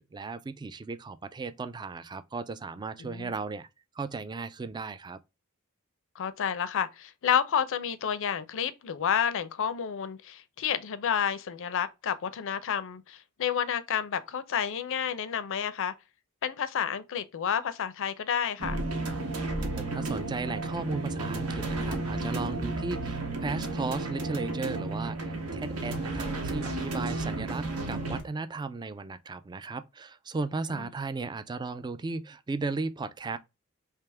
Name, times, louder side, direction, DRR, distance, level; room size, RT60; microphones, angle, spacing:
voice 1, 0.1-3.7 4.0-5.2 19.8-33.4, right 3 dB, 20° right, 0.3 m, -36 dB
voice 2, 3.0-3.3 6.2-15.9 16.4-18.8 30.7-30.9, left 8 dB, 65° left, 0.5 m, -30 dB
sound 1, 18.6-28.2, right 2 dB, 75° right, 1.0 m, -32 dB
3.4 x 2.8 x 3.3 m
head